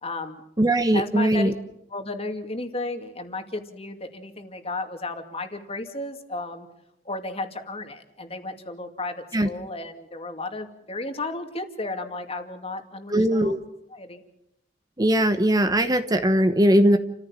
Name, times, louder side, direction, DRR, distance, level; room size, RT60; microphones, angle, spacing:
voice 1, 0.0-0.4 0.8-1.5 1.9-6.7 7.0-13.6 13.9-14.2, left 2 dB, 35° left, 6 dB, 2.4 m, -33 dB
voice 2, 0.6-1.5 9.3-9.5 13.1-13.6 15.0-17.0, right 1 dB, 20° right, 9 dB, 1.0 m, -20 dB
29.5 x 15.0 x 7.4 m, 0.81 s
head